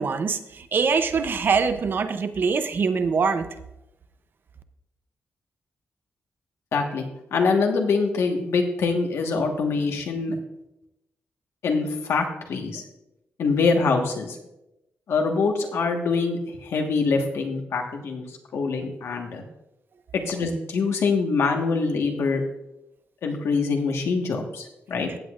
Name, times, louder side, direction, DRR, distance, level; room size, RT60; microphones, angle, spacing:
voice 1, 0.0-3.5, right 5 dB, 50° right, 10 dB, 0.6 m, -23 dB
voice 2, 6.7-7.1 7.3-10.4 11.6-12.8 13.4-14.4 15.1-18.3 18.5-19.4 20.1-22.4 23.2-25.1, left 4 dB, 85° left, 2 dB, 1.4 m, -24 dB
15.5 x 8.3 x 2.5 m, 0.90 s
wide cardioid pair, 125°, 4 cm